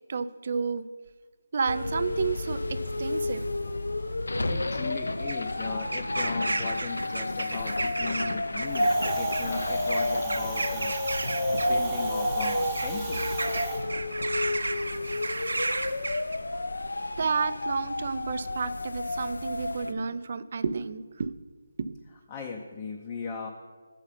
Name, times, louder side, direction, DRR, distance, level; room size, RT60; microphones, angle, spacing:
voice 1, 0.1-0.9 1.5-3.4 17.2-21.3 21.8-22.0, right 5 dB, 45° right, 14 dB, 0.3 m, -31 dB
sound 1, 1.7-19.9, left 2 dB, 90° left, 0.4 m, -32 dB
sound 2, 3.0-16.4, right 2 dB, 85° right, 0.6 m, -34 dB
voice 2, 4.4-11.0 11.5-13.4 16.5-16.6 22.3-23.5, left 5 dB, 20° left, 1 dB, 0.5 m, -38 dB
Wind, 8.7-13.8, right 1 dB, 10° right, 0.9 m, -30 dB
7.0 x 4.9 x 5.7 m, 1.5 s
figure-of-eight pair, 165°, 0 cm